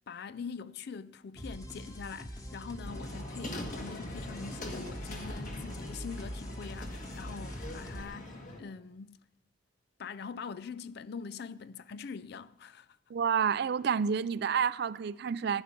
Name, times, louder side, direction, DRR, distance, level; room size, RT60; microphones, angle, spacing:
voice 1, 0.1-9.2 10.0-13.0, left 5 dB, 60° left, 0.4 m, -43 dB
sound 1, 1.4-8.0, equal, 20° left, 1.3 m, -43 dB
sound 2, 2.8-8.6, left 1 dB, 45° left, 1.7 m, -42 dB
voice 2, 13.1-15.6, right 7 dB, 60° right, 0.4 m, -29 dB
14.0 x 9.7 x 6.0 m
head